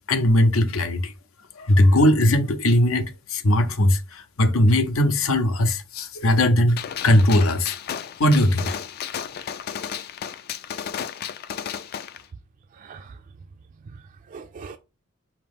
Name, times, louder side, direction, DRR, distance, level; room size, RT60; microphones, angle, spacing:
voice 1, 0.1-1.1 1.6-6.8 7.0-7.8 8.2-8.8, left 1 dB, 85° left, 0.7 m, -19 dB
Gunshot gunfire, 6.8-12.2, left 8 dB, 50° left, 0.3 m, -33 dB
voice 2, 12.7-13.5 13.7-14.8, right 5 dB, 40° right, 0.3 m, -43 dB
5.1 x 2.9 x 3.5 m
head